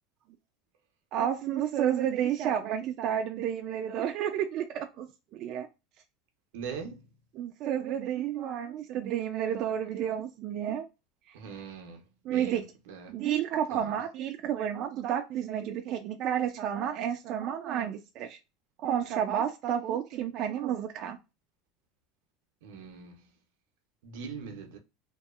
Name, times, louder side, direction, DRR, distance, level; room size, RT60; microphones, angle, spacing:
voice 1, 1.1-5.1 5.3-5.7 7.4-10.9 12.2-12.6 13.1-18.4 18.8-21.2, right 9 dB, 50° right, 0.3 m, -31 dB
voice 2, 6.5-7.0 11.3-12.0 12.3-13.1 13.7-14.0 22.6-23.2 24.0-24.8, right 6 dB, 85° right, 0.6 m, -41 dB
2.6 x 2.3 x 2.3 m
supercardioid pair, 140°, 0 cm